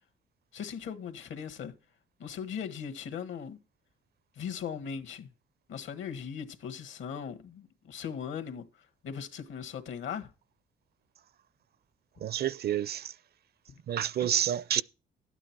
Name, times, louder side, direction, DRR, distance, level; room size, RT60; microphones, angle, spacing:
voice 1, 0.5-1.7 2.2-3.6 4.4-5.3 5.7-8.7 9.0-10.3, left 7 dB, 75° left, 1.6 m, -38 dB
voice 2, 12.2-13.1 13.9-14.8, right 10 dB, 55° right, 0.5 m, -29 dB
12.0 x 9.0 x 4.5 m
cardioid pair, 90°, 20 cm